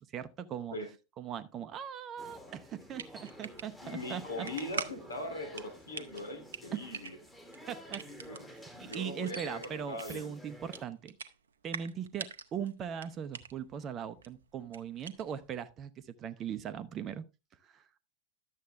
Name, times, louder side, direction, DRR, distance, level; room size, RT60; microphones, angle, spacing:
voice 1, 0.1-0.8 1.2-4.5 6.7-6.9 7.7-8.0 8.5-11.1 11.6-17.2 17.6-17.8, right 8 dB, 30° right, 0.8 m, -40 dB
sound 1, 2.2-10.8, equal, 5° left, 1.7 m, -51 dB
sound 2, 2.6-15.6, right 7 dB, 65° right, 0.7 m, -46 dB
voice 2, 3.8-7.2 8.2-8.5 8.7-10.4, left 1 dB, 75° left, 2.4 m, -41 dB
11.5 x 7.5 x 3.4 m
figure-of-eight pair, 90°, 0 cm